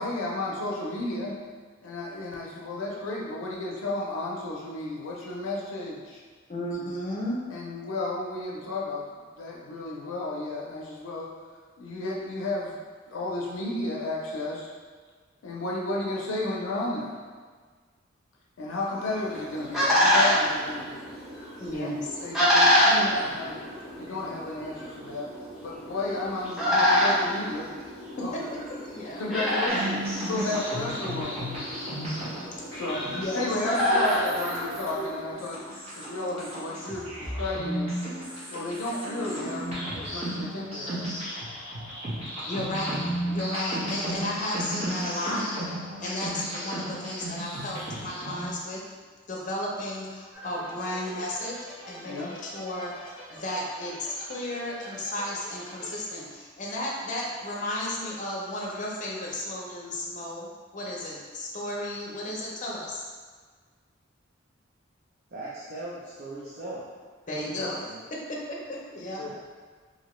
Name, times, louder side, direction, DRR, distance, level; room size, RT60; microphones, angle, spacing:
voice 1, 0.0-1.4 1.8-6.2 7.5-11.3 11.8-12.8 13.1-14.7 15.4-17.2 18.6-21.0 21.7-23.6 24.0-25.3 25.6-27.7 28.1-28.3 29.2-31.4 32.7-33.0 33.3-35.6 36.0-38.0 38.5-41.1 52.0-52.3 67.5-67.7 69.2-69.4, left 2 dB, 85° left, -3 dB, 0.5 m, -33 dB
voice 2, 6.5-7.4 21.6-22.1 28.3-28.6 28.9-29.2 33.1-33.4 42.5-45.4 46.0-48.8 49.3-51.6 51.9-63.0 67.3-67.8 68.3-69.2, left 1 dB, 40° left, -3 dB, 0.6 m, -34 dB
sound 1, 19.1-35.3, left 1 dB, ahead, 0.7 m, -27 dB
sound 2, 29.7-48.5, equal, 30° right, 1.0 m, -34 dB
sound 3, 50.3-56.0, right 1 dB, 80° right, 1.1 m, -45 dB
voice 3, 65.3-66.8 67.8-68.0 69.3-69.4, right 2 dB, 55° right, -7 dB, 0.5 m, -39 dB
2.9 x 2.7 x 3.0 m, 1.5 s
head